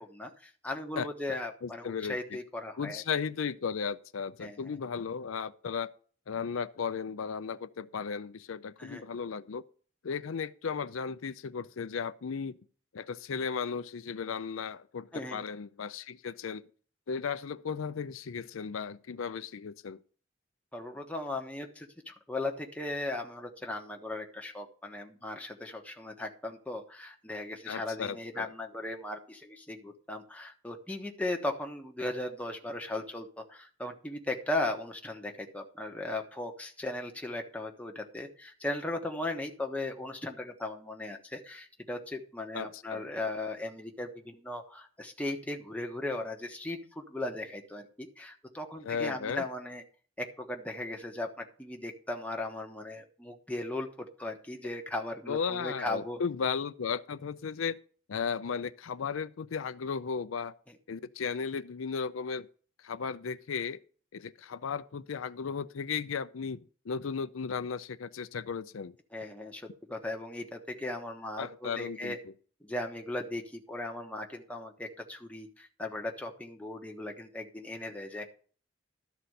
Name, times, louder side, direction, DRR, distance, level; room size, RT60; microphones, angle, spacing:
voice 1, 0.0-3.0 4.4-4.6 8.8-9.0 15.1-15.4 20.7-49.8 50.2-56.2 60.7-60.8 69.1-72.2 72.6-78.3, left 2 dB, 5° left, 1.2 m, -37 dB
voice 2, 1.0-2.2 2.8-5.9 6.3-9.6 10.0-12.6 12.9-16.6 17.1-20.0 27.7-28.5 42.5-43.0 48.8-49.4 55.3-57.8 58.1-60.5 60.9-62.5 62.8-63.8 64.1-68.9 71.4-72.2, left 6 dB, 90° left, 0.5 m, -35 dB
12.5 x 4.3 x 7.8 m
head